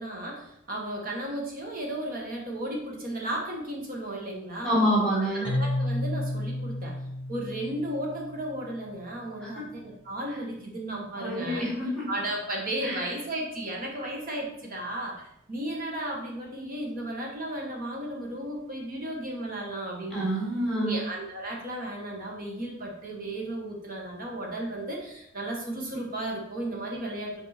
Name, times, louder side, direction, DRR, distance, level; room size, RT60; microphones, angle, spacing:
voice 1, 0.0-4.7 5.1-6.9 7.3-11.6 12.1-20.3 20.7-27.4, right 1 dB, 40° right, -1 dB, 1.4 m, -34 dB
voice 2, 4.6-5.5 9.4-9.7 11.1-12.0 12.8-13.0 20.1-21.0, equal, 5° left, -7 dB, 2.5 m, -27 dB
Keyboard (musical), 5.4-9.1, left 1 dB, 25° left, 0.9 m, -32 dB
5.3 x 4.8 x 4.2 m, 0.78 s
head